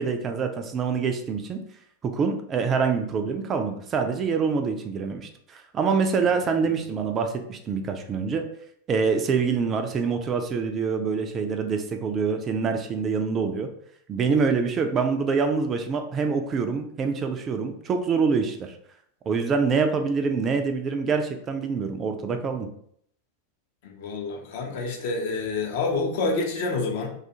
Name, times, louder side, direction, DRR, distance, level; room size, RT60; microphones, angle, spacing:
voice 1, 0.0-1.6 2.0-8.5 8.9-13.7 14.1-18.8 19.3-22.7, right 5 dB, 25° right, 5 dB, 0.3 m, -25 dB
voice 2, 23.8-27.1, left 3 dB, 50° left, 3 dB, 0.5 m, -28 dB
2.3 x 2.3 x 2.7 m, 0.67 s
figure-of-eight pair, 90°, 0 cm